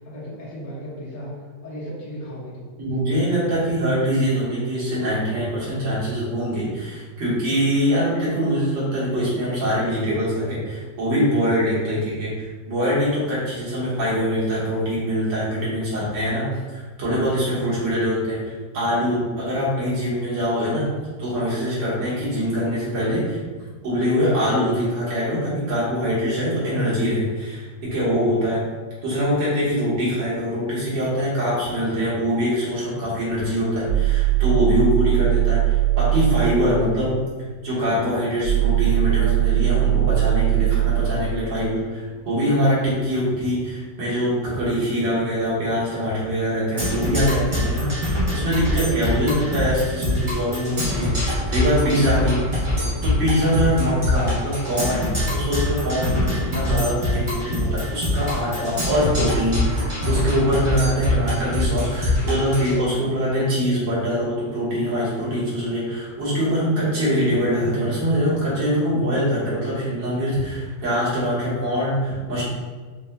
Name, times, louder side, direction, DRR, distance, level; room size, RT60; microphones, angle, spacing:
voice 1, 0.0-1.3 1.6-2.7 3.0-3.4 52.4-52.7, equal, 75° left, -8 dB, 1.9 m, -36 dB
voice 2, 2.8-20.9 21.2-23.4 23.8-28.6 29.0-37.2 37.6-52.4 53.0-72.4, equal, 80° right, -9 dB, 2.1 m, -23 dB
sound 1, 33.4-36.7 38.4-42.6, right 15 dB, 60° right, 1.9 m, -21 dB
Percussion, 46.8-62.7, left 1 dB, 30° right, 0.5 m, -24 dB
5.3 x 2.7 x 2.2 m, 1.4 s
omnidirectional pair, 2.0 m